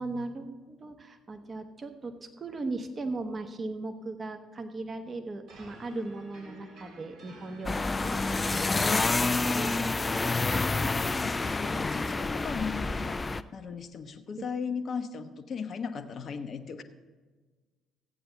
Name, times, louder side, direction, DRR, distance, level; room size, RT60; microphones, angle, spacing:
voice 1, 0.0-9.1 9.5-9.8 14.4-14.5, right 3 dB, 30° right, 6 dB, 1.1 m, -38 dB
sound 1, 5.5-12.3, right 2 dB, 60° right, 2.9 m, -50 dB
sound 2, 7.6-13.4, left 3 dB, 20° left, 0.4 m, -28 dB
voice 2, 8.9-9.6 10.0-13.2 13.5-16.8, left 6 dB, 45° left, 10 dB, 0.7 m, -38 dB
14.0 x 8.8 x 3.9 m, 1.4 s
figure-of-eight pair, 50°, 0 cm